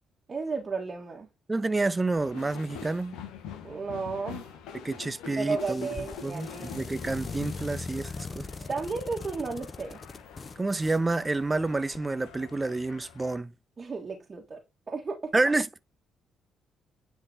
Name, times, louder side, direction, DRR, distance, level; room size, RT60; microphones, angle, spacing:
voice 1, 0.3-1.3 3.6-4.5 5.4-6.8 8.7-10.0 13.8-14.6 14.9-15.3, right 4 dB, 40° right, 1.5 m, -33 dB
voice 2, 1.5-3.2 4.7-5.9 6.2-8.5 10.6-13.5 15.3-15.7, right 3 dB, 25° right, 0.6 m, -29 dB
sound 1, 2.1-13.4, left 8 dB, 75° left, 1.1 m, -45 dB
sound 2, 5.5-12.0, left 4 dB, 35° left, 0.5 m, -41 dB
9.8 x 3.7 x 2.8 m
hypercardioid pair, 50°, 0 cm